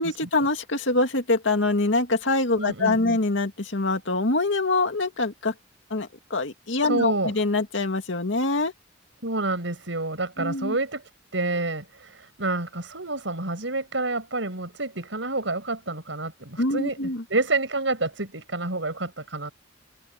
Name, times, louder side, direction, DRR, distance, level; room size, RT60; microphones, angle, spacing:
voice 1, 0.0-5.5 5.9-8.7 10.4-10.8 16.6-17.2, left 2 dB, 80° left, 2.2 m, -24 dB
voice 2, 2.5-3.2 6.8-7.3 9.2-11.0 11.3-17.0 17.3-19.5, right 2 dB, 80° right, 6.1 m, -28 dB
open air
head